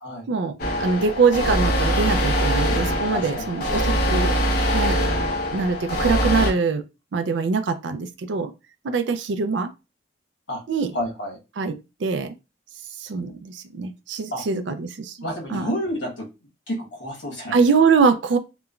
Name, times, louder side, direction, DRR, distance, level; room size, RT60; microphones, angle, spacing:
voice 1, 0.3-4.3 4.7-5.0 5.5-6.8 7.1-8.5 8.8-9.7 10.7-10.9 11.6-12.4 13.0-15.2 15.5-15.7 17.5-18.4, right 4 dB, 70° right, 0.4 m, -23 dB
sound 1, 0.6-6.5, equal, 55° left, 0.7 m, -23 dB
voice 2, 3.1-3.5 10.5-10.6 10.9-11.4 14.3-14.4 15.2-16.2 16.7-17.5, equal, 85° left, 1.2 m, -29 dB
3.0 x 2.2 x 2.4 m
head